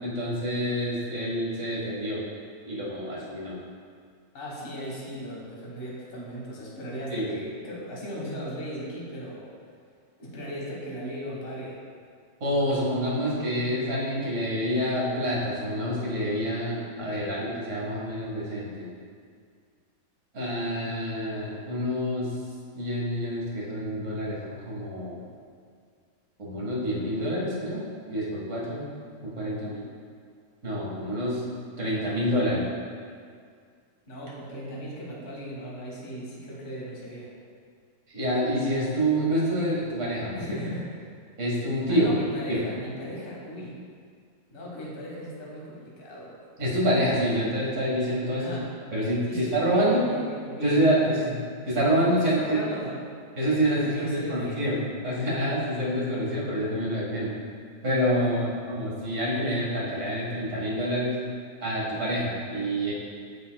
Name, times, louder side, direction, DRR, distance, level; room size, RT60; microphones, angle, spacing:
voice 1, 0.0-2.2 2.7-3.6 7.1-7.4 12.4-18.9 20.3-22.3 22.8-25.2 26.4-28.9 29.2-29.9 30.6-31.4 31.8-32.7 38.1-40.4 41.4-42.1 42.5-42.6 46.6-48.6 48.9-50.0 50.6-51.4 51.7-52.4 53.4-57.3 57.8-61.2 61.6-62.9, equal, 45° right, -6 dB, 1.9 m, -27 dB
voice 2, 4.3-9.5 10.2-11.8 34.1-37.3 40.3-41.1 41.9-43.8 44.5-46.3 48.4-48.6 49.3-51.0 52.4-53.0 53.8-54.7 58.1-58.4, equal, 35° left, -5 dB, 1.5 m, -37 dB
8.5 x 7.0 x 2.3 m, 2.1 s
omnidirectional pair, 1.9 m